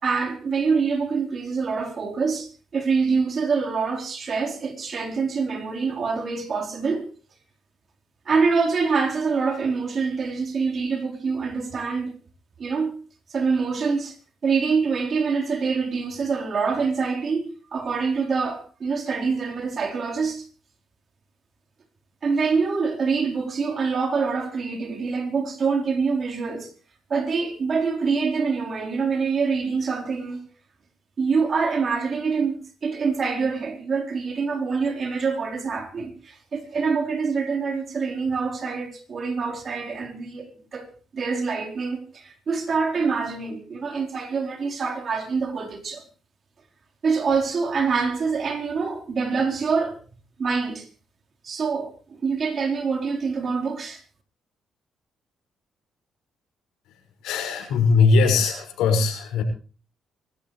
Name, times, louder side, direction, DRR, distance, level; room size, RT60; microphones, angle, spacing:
voice 1, 0.0-7.1 8.3-12.1 12.6-12.9 13.3-14.2 14.4-20.4 22.2-26.7 27.1-30.4 31.2-40.9 41.1-46.0 47.0-50.0 50.4-50.9 51.4-54.0, right 5 dB, 45° right, 4.2 m, -25 dB
voice 2, 57.2-59.4, left 4 dB, 90° left, 6.0 m, -20 dB
24.5 x 13.5 x 3.3 m
cardioid pair, 90°, 0 cm